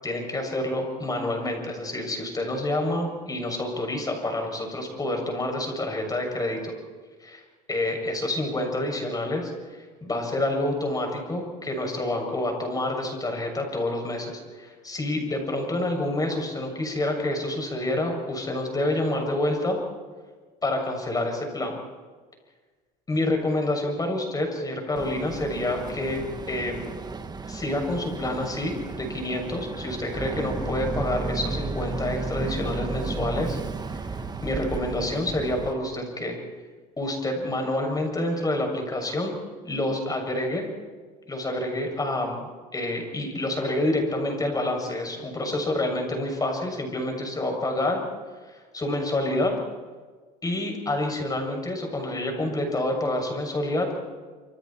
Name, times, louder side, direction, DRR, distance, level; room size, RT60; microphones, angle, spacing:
voice 1, 0.0-6.7 7.2-7.4 7.7-9.5 10.0-19.8 20.6-21.8 23.1-26.9 27.5-33.6 33.9-34.0 34.4-36.4 37.0-39.3 39.6-40.6 41.3-48.0 48.7-49.5 50.4-53.9, left 1 dB, 20° left, 3 dB, 7.1 m, -28 dB
Boat Water vehicle, 25.0-35.7, right 4 dB, 20° right, 1.5 m, -33 dB
27.0 x 26.5 x 4.5 m, 1.4 s
supercardioid pair, 105°, 19 cm